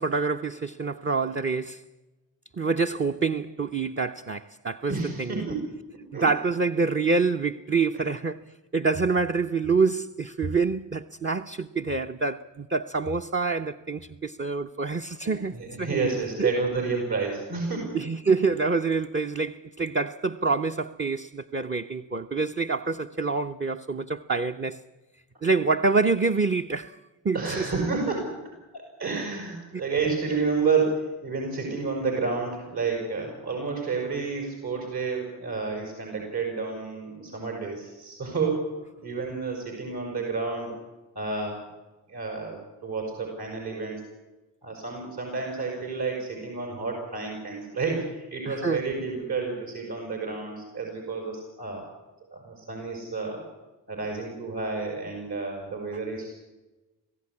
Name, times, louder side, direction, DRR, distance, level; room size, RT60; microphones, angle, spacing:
voice 1, 0.0-1.8 2.6-5.4 6.2-8.4 8.7-16.0 16.4-16.5 17.9-24.8 25.4-27.0 27.2-27.7 48.5-48.8, right 4 dB, 25° right, 0.9 m, -26 dB
voice 2, 4.9-5.7 6.1-6.3 7.9-8.0 15.2-18.0 27.3-28.4 28.7-40.8 41.1-41.6 42.1-44.0 44.6-51.8 52.3-53.4 53.9-56.3, right 4 dB, 60° right, 6.4 m, -30 dB
21.5 x 15.5 x 9.8 m
supercardioid pair, 40°, 44 cm